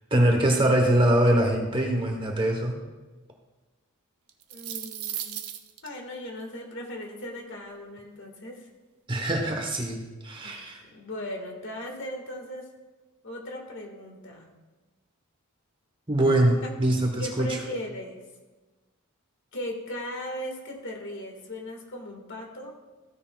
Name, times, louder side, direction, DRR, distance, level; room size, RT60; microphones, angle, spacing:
voice 1, 0.1-2.8 9.1-10.8 16.1-17.6, right 1 dB, 20° right, 2 dB, 1.1 m, -23 dB
sound 1, 4.3-5.9, right 11 dB, 75° right, 0.7 m, -35 dB
voice 2, 4.5-5.4 5.8-8.7 10.4-10.5 10.9-12.7 13.2-14.5 17.2-18.2 19.5-22.7, left 1 dB, 55° left, 1 dB, 1.9 m, -37 dB
15.0 x 9.7 x 2.4 m, 1.2 s
head